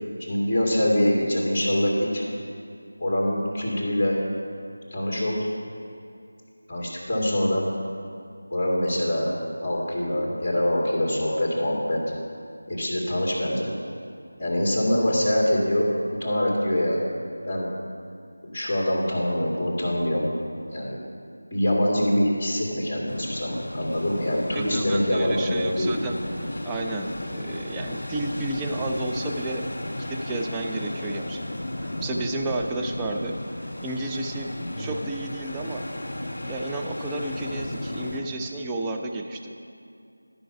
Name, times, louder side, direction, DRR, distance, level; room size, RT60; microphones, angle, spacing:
voice 1, 0.2-2.2 3.0-4.2 4.9-5.5 6.7-7.6 8.5-9.3 9.6-12.0 12.7-13.7 14.4-15.9 16.2-17.0 17.4-17.7 18.4-20.3 20.7-21.0 21.5-25.9 34.7-34.9, left 1 dB, 25° left, -3 dB, 2.1 m, -24 dB
sound 1, 23.1-38.2, left 1 dB, 55° left, 1.6 m, -34 dB
voice 2, 24.5-29.7 30.0-31.4 31.8-33.4 33.8-35.8 36.5-39.6, right 2 dB, 10° right, 1 dB, 0.4 m, -32 dB
12.0 x 5.5 x 5.8 m, 2.5 s
figure-of-eight pair, 170°, 0 cm